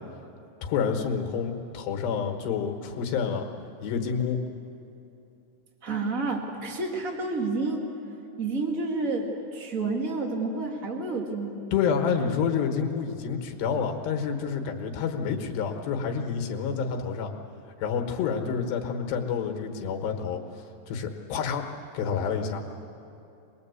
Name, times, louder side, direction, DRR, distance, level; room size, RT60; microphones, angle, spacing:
voice 1, 0.6-3.4 3.8-4.4 11.7-17.3 17.8-21.7 21.9-22.6, left 6 dB, 70° left, 3 dB, 3.4 m, -28 dB
voice 2, 5.8-7.8 8.4-12.1, right 3 dB, 45° right, 1 dB, 1.0 m, -30 dB
25.0 x 21.0 x 8.3 m, 2.8 s
omnidirectional pair, 5.3 m